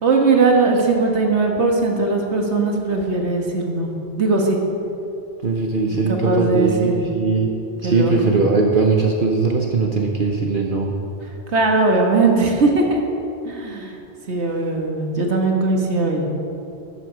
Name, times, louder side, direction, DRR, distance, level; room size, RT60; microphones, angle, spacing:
voice 1, 0.0-3.9 4.2-4.6 5.9-7.0 7.8-8.3 11.5-13.0 13.5-14.0 14.3-16.3, right 3 dB, 85° right, 1 dB, 1.7 m, -19 dB
voice 2, 5.4-7.5 7.8-10.9, right 4 dB, 50° right, 1 dB, 1.1 m, -20 dB
14.0 x 11.0 x 5.1 m, 2.8 s
omnidirectional pair, 1.1 m